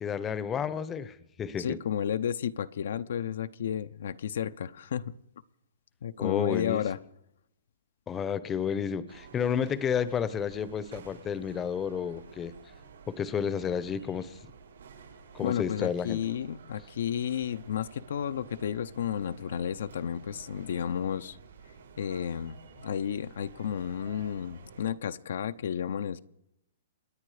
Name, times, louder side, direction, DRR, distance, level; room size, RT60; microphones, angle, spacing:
voice 1, 0.0-1.8 6.2-6.8 8.1-12.5 13.1-14.4 15.3-16.2, left 7 dB, 20° left, 16 dB, 0.8 m, -31 dB
voice 2, 1.6-5.1 6.0-7.0 15.4-21.4 22.0-26.2, left 8 dB, 75° left, 11 dB, 0.8 m, -32 dB
sound 1, 9.1-24.9, right 6 dB, 85° right, 5.8 m, -51 dB
28.0 x 10.0 x 5.0 m, 0.80 s
hypercardioid pair, 150°, 0 cm